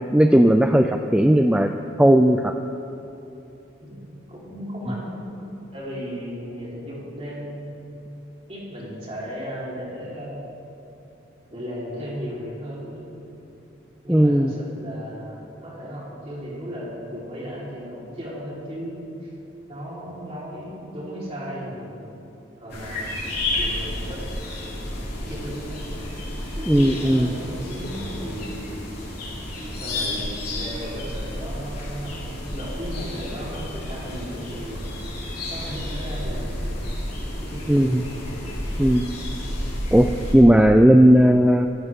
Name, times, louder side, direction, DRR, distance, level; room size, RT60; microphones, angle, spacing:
voice 1, 0.0-1.7 2.0-2.5 14.1-14.5 26.7-27.3 37.7-38.0 38.8-39.1 39.9-41.7, equal, 5° right, 6 dB, 0.3 m, -16 dB
voice 2, 3.8-7.6 8.5-10.4 11.5-13.2 14.0-19.3 19.7-22.1 22.6-23.2 23.5-24.9 25.1-25.8 26.5-28.9 29.6-34.9 35.3-36.9 37.4-37.9, equal, 30° right, -6 dB, 4.2 m, -35 dB
sound 1, 22.7-40.3, left 1 dB, 50° left, 4.3 m, -31 dB
24.5 x 13.5 x 3.7 m, 2.9 s
head